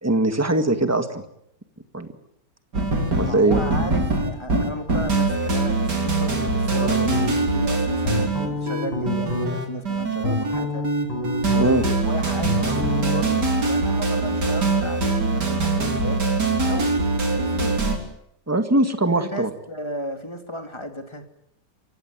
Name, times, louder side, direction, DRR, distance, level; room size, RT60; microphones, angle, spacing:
voice 1, 0.0-1.2 1.9-2.1 3.2-3.6 11.6-11.8 18.5-19.5, right 2 dB, 10° right, 7 dB, 1.8 m, -21 dB
sound 1, 2.7-18.0, right 3 dB, 60° right, 4.2 m, -23 dB
voice 2, 3.2-10.9 11.4-16.2 16.7-17.8 19.2-21.2, left 1 dB, 15° left, 5 dB, 2.8 m, -34 dB
sound 2, 6.7-7.6 8.0-9.5 10.0-11.9 12.2-13.2, left 2 dB, 75° left, 7.7 m, -28 dB
28.0 x 16.5 x 9.5 m, 0.78 s
omnidirectional pair, 2.1 m